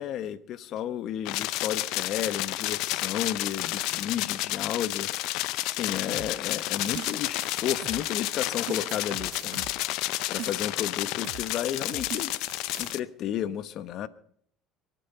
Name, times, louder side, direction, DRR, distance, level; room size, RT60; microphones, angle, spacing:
voice 1, 0.0-10.0 10.3-12.3 12.8-14.1, left 10 dB, 55° left, 0.9 m, -33 dB
sound 1, 1.3-13.0, left 18 dB, 75° left, 0.6 m, -31 dB
sound 2, 3.8-12.9, left 2 dB, 25° left, 6.1 m, -52 dB
sound 3, 6.1-8.3 8.7-10.9 11.2-11.5 11.9-12.9, right 13 dB, 65° right, 0.9 m, -42 dB
23.0 x 9.3 x 5.6 m
supercardioid pair, 110°, 0 cm